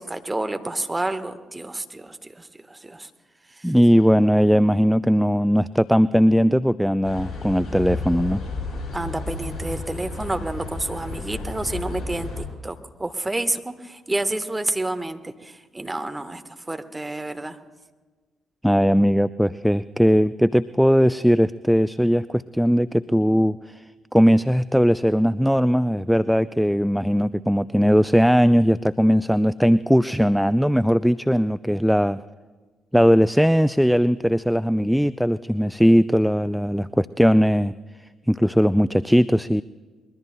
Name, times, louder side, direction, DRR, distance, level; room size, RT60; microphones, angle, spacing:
voice 1, 0.0-3.1 3.5-3.7 8.9-17.6, right 2 dB, 15° right, 9 dB, 1.2 m, -29 dB
voice 2, 3.6-8.4 18.6-23.8 24.1-32.2 32.9-37.7 38.3-39.6, equal, ahead, 16 dB, 0.4 m, -19 dB
sound 1, 7.0-12.5, left 3 dB, 45° left, 5.7 m, -32 dB
24.5 x 22.0 x 2.2 m, 1.4 s
figure-of-eight pair, 45°, 0 cm